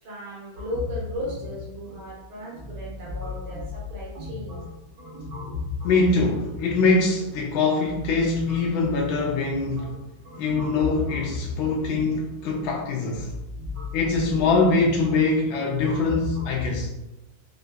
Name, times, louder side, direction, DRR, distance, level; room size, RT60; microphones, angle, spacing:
voice 1, 0.0-4.6, equal, 80° right, -7 dB, 2.2 m, -36 dB
sound 1, 0.6-16.8, left 3 dB, 60° right, 1.8 m, -36 dB
voice 2, 5.8-9.9 10.4-13.3 13.9-16.9, left 3 dB, 80° left, -1 dB, 1.3 m, -23 dB
4.5 x 2.5 x 3.4 m, 0.91 s
omnidirectional pair, 2.3 m